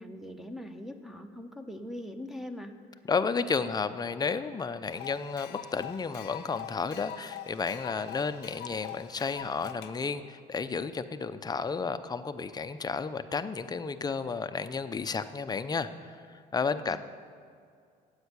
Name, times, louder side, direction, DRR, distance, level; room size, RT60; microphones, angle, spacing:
voice 1, 0.0-2.7 16.9-17.0, left 1 dB, ahead, 7 dB, 0.9 m, -41 dB
voice 2, 3.1-17.0, left 5 dB, 25° left, 11 dB, 0.5 m, -32 dB
sound 1, 4.9-9.9, left 11 dB, 85° left, 0.6 m, -44 dB
9.9 x 8.1 x 8.2 m, 2.2 s
cardioid pair, 110°, 17 cm